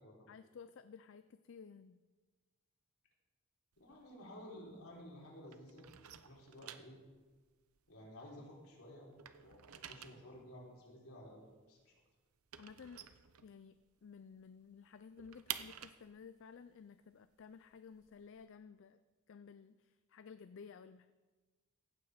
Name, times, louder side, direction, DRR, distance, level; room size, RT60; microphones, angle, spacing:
voice 1, 0.3-2.0 12.6-13.0 13.4-19.0 19.3-21.1, left 6 dB, 60° left, 12 dB, 0.4 m, -55 dB
sound 1, 3.7-5.2 5.5-8.7 9.0-14.0 14.3-14.4 14.7-18.4, right 11 dB, 75° right, 0.7 m, -50 dB
voice 2, 3.8-5.9 6.2-7.0 7.9-11.4 11.7-12.0, left 1 dB, 75° left, -3 dB, 3.7 m, -54 dB
16.0 x 8.8 x 4.9 m, 1.3 s
head